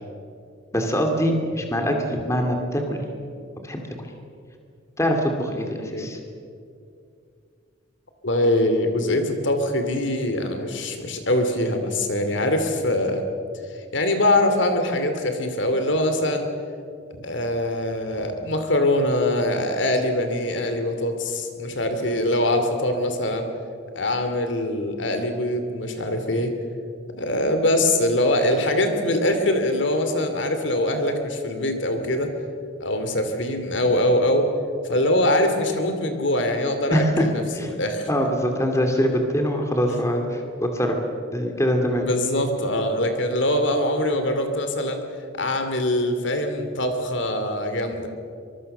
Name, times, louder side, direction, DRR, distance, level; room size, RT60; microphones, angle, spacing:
voice 1, 0.7-3.0 3.6-3.8 5.0-6.2 36.9-37.3 37.5-37.7 38.1-41.0 41.3-42.1, equal, 15° left, 3 dB, 2.4 m, -23 dB
voice 2, 8.2-13.2 13.9-16.5 17.1-23.5 23.9-26.5 27.2-32.3 32.8-34.5 34.9-38.1 39.9-40.0 42.1-45.0 45.4-48.1, left 1 dB, 65° left, 7 dB, 2.7 m, -23 dB
24.5 x 22.5 x 6.8 m, 2.4 s
head